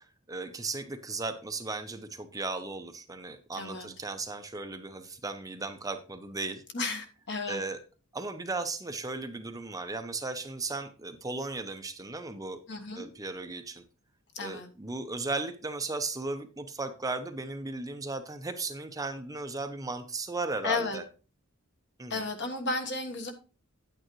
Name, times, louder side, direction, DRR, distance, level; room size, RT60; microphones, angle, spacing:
voice 1, 0.0-6.6 7.5-7.8 8.1-12.6 12.9-13.8 14.4-21.0 22.0-22.2, right 3 dB, 15° right, 7 dB, 0.7 m, -36 dB
voice 2, 3.5-3.9 6.7-7.6 12.7-13.1 14.3-14.7 20.6-21.0 22.1-23.3, left 3 dB, 55° left, 5 dB, 1.4 m, -33 dB
9.9 x 9.0 x 3.1 m, 0.36 s
head